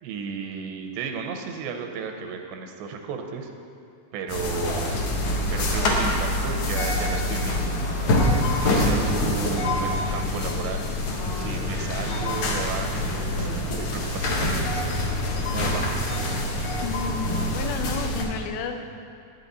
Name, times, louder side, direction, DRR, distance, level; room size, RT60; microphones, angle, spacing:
voice 1, 0.0-3.5 4.1-5.1 5.5-7.7 8.6-10.9 11.3-14.8 15.5-15.9, right 6 dB, 85° right, 4 dB, 3.0 m, -34 dB
sound 1, 4.3-18.2, left 1 dB, 70° left, 1.8 m, -25 dB
voice 2, 16.8-18.8, left 5 dB, 90° left, 5 dB, 3.0 m, -31 dB
14.0 x 9.0 x 4.1 m, 2.4 s
omnidirectional pair, 4.9 m